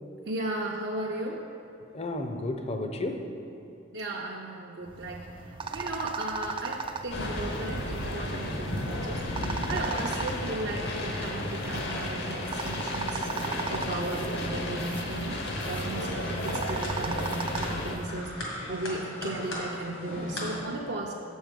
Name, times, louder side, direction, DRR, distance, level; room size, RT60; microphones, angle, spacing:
voice 1, 0.3-1.5 3.9-9.2 9.7-21.1, right 2 dB, 60° right, -2 dB, 0.6 m, -36 dB
voice 2, 1.9-3.3 8.7-8.9 9.3-9.8, left 1 dB, 35° left, 6 dB, 0.6 m, -33 dB
sound 1, 4.9-18.1, right 4 dB, 25° right, 0.3 m, -37 dB
sound 2, 7.1-18.0, left 1 dB, 60° left, 0.9 m, -34 dB
sound 3, 15.3-20.6, left 1 dB, 80° left, 1.9 m, -39 dB
7.4 x 6.3 x 5.1 m, 2.9 s
head